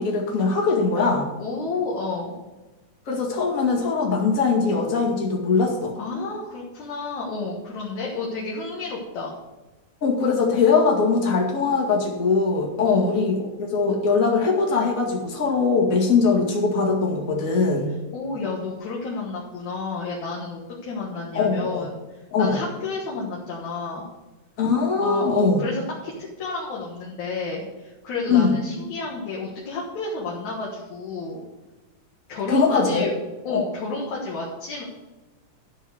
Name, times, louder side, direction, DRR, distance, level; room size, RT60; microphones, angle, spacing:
voice 1, 0.0-1.3 3.1-5.9 10.0-17.9 21.3-21.9 22.3-22.6 24.6-25.6 28.3-28.5 32.5-33.1 33.5-33.7, left 4 dB, 30° left, -1 dB, 2.0 m, -21 dB
voice 2, 1.4-2.4 6.0-9.4 12.8-13.2 18.1-22.0 22.4-24.1 25.0-26.1 26.4-31.5 32.3-33.1 33.4-34.8, left 3 dB, 65° left, -3 dB, 2.8 m, -31 dB
13.0 x 4.6 x 7.9 m, 1.1 s
omnidirectional pair, 3.7 m